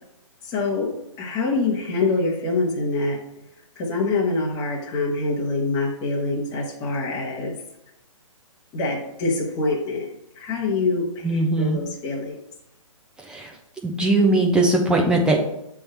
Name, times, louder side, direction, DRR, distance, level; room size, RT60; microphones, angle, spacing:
voice 1, 0.4-3.2 3.7-7.5 8.7-10.1 10.4-12.4, left 3 dB, 25° left, -3 dB, 1.6 m, -25 dB
voice 2, 11.2-11.8 13.3-13.5 13.8-15.4, right 2 dB, 5° right, 0 dB, 1.0 m, -20 dB
7.8 x 3.7 x 4.5 m, 0.82 s
hypercardioid pair, 140°, 17 cm